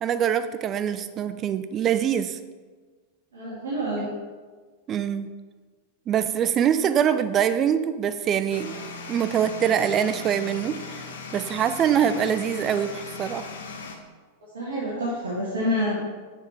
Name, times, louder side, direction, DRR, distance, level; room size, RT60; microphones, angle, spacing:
voice 1, 0.0-2.4 4.0-4.1 4.9-5.3 6.1-8.8 9.1-11.0 11.3-13.5, right 9 dB, 30° right, 12 dB, 0.4 m, -24 dB
voice 2, 3.3-4.1 14.5-16.0, equal, 65° right, -7 dB, 1.7 m, -27 dB
sound 1, 8.5-14.0, left 4 dB, 65° left, 0.8 m, -38 dB
6.6 x 4.4 x 4.5 m, 1.4 s
figure-of-eight pair, 90°, 0 cm